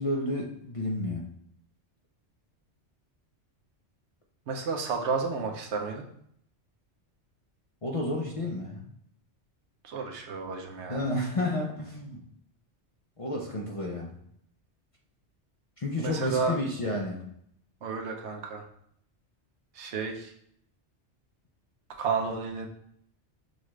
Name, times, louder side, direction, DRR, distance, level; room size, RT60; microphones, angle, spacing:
voice 1, 0.0-1.3 7.8-8.8 10.9-12.2 13.2-14.2 15.8-17.2, left 1 dB, 40° left, -1 dB, 0.5 m, -31 dB
voice 2, 4.5-6.1 9.8-11.0 16.0-16.5 17.8-18.7 19.7-20.3 22.0-22.7, right 4 dB, 75° right, 3 dB, 1.0 m, -31 dB
6.3 x 2.4 x 3.1 m, 0.69 s
omnidirectional pair, 1.2 m